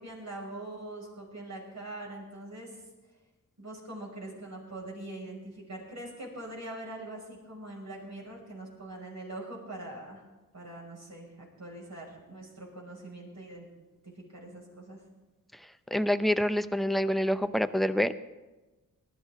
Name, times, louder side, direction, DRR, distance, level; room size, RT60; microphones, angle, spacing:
voice 1, 0.0-2.8 3.6-10.2 10.5-13.7 14.0-15.0, right 1 dB, 55° right, -2 dB, 6.1 m, -43 dB
voice 2, 15.9-18.1, equal, ahead, 11 dB, 0.6 m, -26 dB
19.0 x 13.0 x 3.7 m, 1.1 s
cardioid pair, 65°, 33 cm